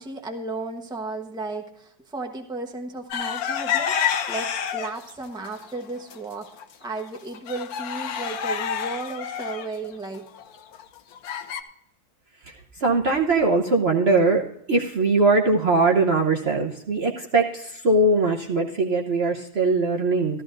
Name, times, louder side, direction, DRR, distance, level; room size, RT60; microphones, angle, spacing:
voice 1, 0.0-3.9 4.3-6.5 6.8-10.3, right 3 dB, 5° right, 3 dB, 1.0 m, -34 dB
sound 1, 3.1-5.1 5.6-6.2 6.6-6.7 7.0-11.6, left 8 dB, 70° left, 1.2 m, -28 dB
voice 2, 12.4-20.4, right 3 dB, 45° right, 0 dB, 1.0 m, -21 dB
14.5 x 13.5 x 2.5 m, 0.74 s
omnidirectional pair, 1.7 m